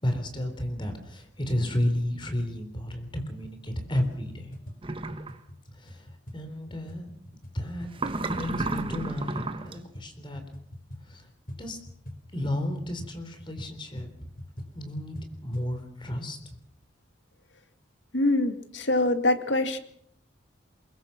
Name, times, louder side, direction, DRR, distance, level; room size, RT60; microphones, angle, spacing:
voice 1, 0.0-4.5 5.7-6.1 6.3-7.1 7.5-7.9 8.3-10.4 11.0-11.3 11.6-11.8 12.3-14.1 14.8-16.4, left 1 dB, 25° left, 7 dB, 3.8 m, -32 dB
sound 1, 4.1-15.8, left 1 dB, 45° left, 4.7 m, -45 dB
sound 2, 4.8-5.3 7.9-9.7, right 2 dB, 30° right, 1.3 m, -31 dB
voice 2, 18.1-19.8, left 2 dB, 70° left, 8 dB, 2.2 m, -24 dB
23.5 x 22.0 x 6.0 m, 0.68 s
head